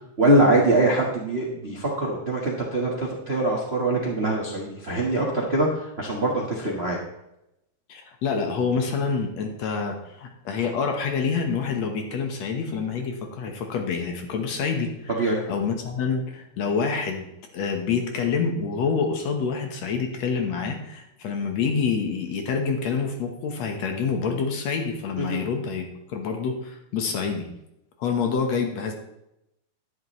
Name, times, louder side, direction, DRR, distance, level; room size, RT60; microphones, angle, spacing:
voice 1, 0.2-7.0 15.1-15.4 25.2-25.4, right 2 dB, 35° right, -2 dB, 0.9 m, -23 dB
voice 2, 7.9-14.9 15.2-27.5 28.0-28.9, left 5 dB, 65° left, 4 dB, 2.3 m, -27 dB
10.5 x 10.5 x 3.2 m, 0.85 s
omnidirectional pair, 3.5 m